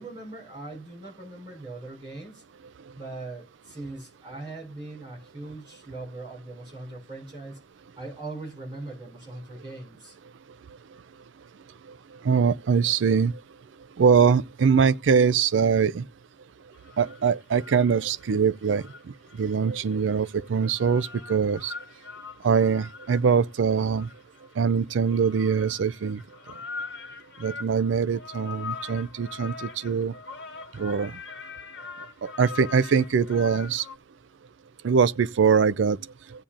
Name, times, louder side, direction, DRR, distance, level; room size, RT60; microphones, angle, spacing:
voice 1, 0.0-2.4 2.9-7.6 8.0-10.2, right 2 dB, 25° right, 6.1 m, -40 dB
voice 2, 12.2-13.4 14.0-16.0 17.0-18.8 19.4-21.7 22.4-24.1 24.6-26.2 27.4-30.1 30.8-31.1 32.2-33.8 34.8-36.0, right 6 dB, 85° right, 0.4 m, -22 dB
sound 1, 16.7-18.2 18.6-34.0, left 5 dB, 65° left, 1.3 m, -42 dB
15.5 x 8.6 x 2.5 m
head